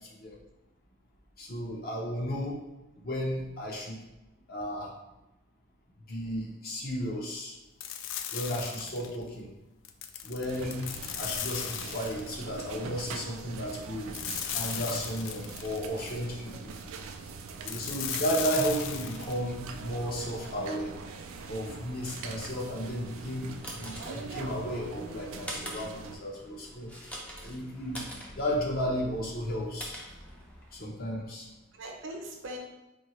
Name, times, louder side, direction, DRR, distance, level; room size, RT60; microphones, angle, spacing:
voice 1, 1.4-2.6 3.0-4.0 4.5-4.9 6.1-7.5 8.3-9.5 10.2-14.1 14.5-16.8 17.6-20.9 21.5-27.1 27.4-28.1 28.4-30.0 30.7-31.5, equal, 45° left, -2 dB, 0.8 m, -34 dB
sound 1, 7.8-9.2 9.8-12.4 14.1-15.9 17.7-19.4, left 9 dB, 65° left, 0.3 m, -37 dB
sound 2, 10.4-26.2, right 4 dB, 80° right, 0.4 m, -43 dB
voice 2, 15.1-15.5 16.4-16.7 31.7-32.6, right 1 dB, 65° right, 0 dB, 0.7 m, -43 dB
sound 3, 23.2-30.9, equal, 5° left, 0.5 m, -45 dB
4.4 x 2.8 x 3.1 m, 1.0 s
head